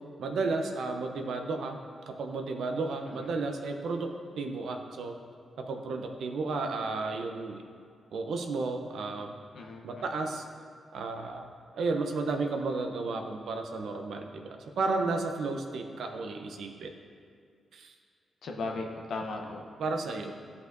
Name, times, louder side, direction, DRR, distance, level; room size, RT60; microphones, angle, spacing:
voice 1, 0.2-1.8 2.1-5.1 5.6-7.6 8.1-9.3 9.8-10.4 10.9-14.5 14.8-16.9 17.7-17.9 19.8-20.3, right 3 dB, 75° right, 4 dB, 0.6 m, -33 dB
voice 2, 9.5-10.1 18.4-19.6, left 3 dB, 70° left, 1 dB, 0.7 m, -37 dB
11.0 x 5.5 x 2.6 m, 2.2 s
supercardioid pair, 45°, 0 cm